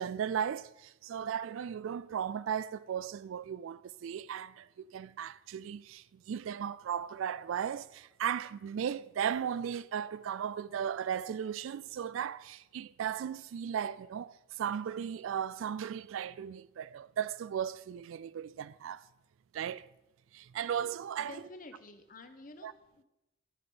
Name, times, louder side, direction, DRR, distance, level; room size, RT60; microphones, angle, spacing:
voice 1, 0.0-19.1 19.5-19.9 20.3-21.4 22.6-22.7, right 8 dB, 75° right, 0.3 m, -36 dB
voice 2, 21.2-23.0, left 3 dB, 40° left, 0.9 m, -50 dB
13.0 x 6.0 x 5.5 m
head